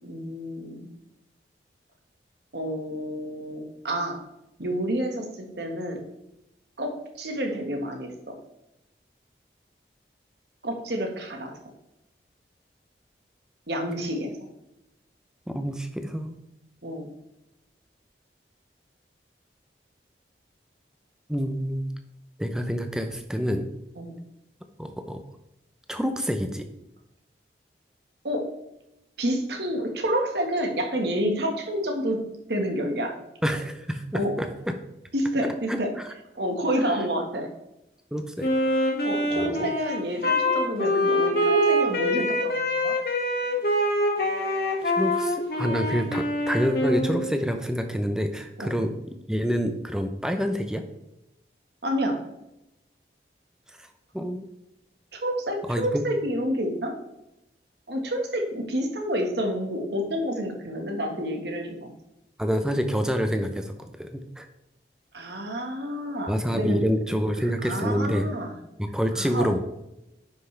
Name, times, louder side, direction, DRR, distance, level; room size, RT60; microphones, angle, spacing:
voice 1, 0.0-0.9 2.5-4.2 4.6-6.0 6.8-8.1 10.6-11.6 13.7-14.5 16.8-17.1 24.0-24.1 28.2-28.5 29.2-32.2 32.5-33.1 34.1-34.4 35.1-35.9 36.3-37.5 39.0-42.9 48.6-48.8 51.8-52.2 55.1-56.9 57.9-61.9 65.1-66.8 67.4-68.6 69.1-69.5, equal, 75° right, 3 dB, 1.6 m, -29 dB
voice 2, 15.5-16.4 21.3-21.9 22.4-23.6 24.8-25.2 25.9-26.6 33.4-34.0 34.4-34.5 35.7-35.8 38.1-38.5 39.3-39.7 44.8-48.9 49.3-50.8 53.8-53.9 54.1-54.5 55.7-56.0 62.4-64.5 66.3-68.3 68.8-69.6, equal, 5° right, 6 dB, 0.6 m, -27 dB
Wind instrument woodwind instrument, 38.4-47.4, left 1 dB, 60° left, 1.8 m, -25 dB
9.9 x 5.8 x 3.3 m, 0.88 s
head